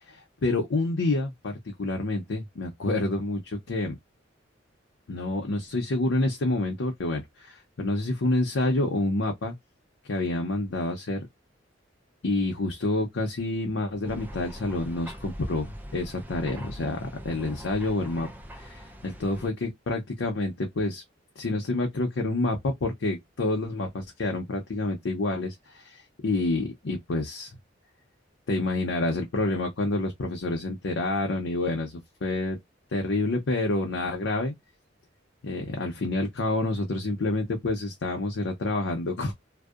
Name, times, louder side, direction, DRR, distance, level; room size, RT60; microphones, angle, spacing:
voice 1, 0.1-4.0 5.1-9.5 10.1-11.2 12.2-18.3 18.6-21.0 21.4-27.5 28.5-32.6 32.9-34.5 35.4-39.3, left 2 dB, 75° left, 0.6 m, -28 dB
sound 1, 14.0-19.5, equal, 10° right, 0.4 m, -42 dB
2.6 x 2.0 x 2.3 m
head